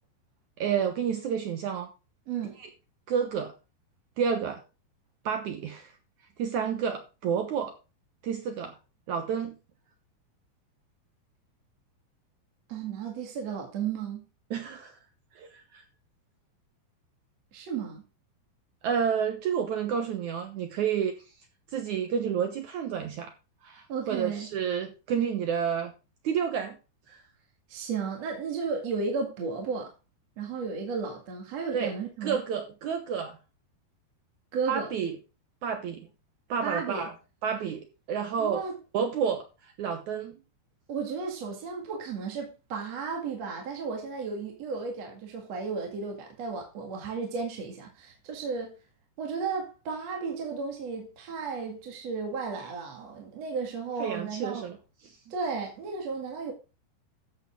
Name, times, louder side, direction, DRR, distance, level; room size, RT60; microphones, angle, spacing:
voice 1, 0.6-1.9 3.1-3.5 4.2-4.6 5.2-5.9 6.4-7.7 8.2-8.8 9.1-9.5 14.5-15.0 15.3-15.8 18.8-21.1 21.7-23.3 23.6-25.9 26.2-26.8 27.1-27.2 31.7-31.9 32.2-33.4 34.7-35.1 35.6-36.1 36.5-37.1 37.4-38.6 38.9-40.4 54.0-54.8 55.0-55.2, right 7 dB, 90° right, 1.6 m, -30 dB
voice 2, 2.3-2.6 12.7-14.2 17.5-18.0 23.9-24.5 27.7-29.9 30.4-32.4 34.5-34.9 36.6-37.1 38.4-38.7 40.9-48.7 49.2-54.7 55.3-56.5, right 5 dB, 45° right, 2.5 m, -34 dB
13.5 x 8.1 x 3.7 m
omnidirectional pair, 5.3 m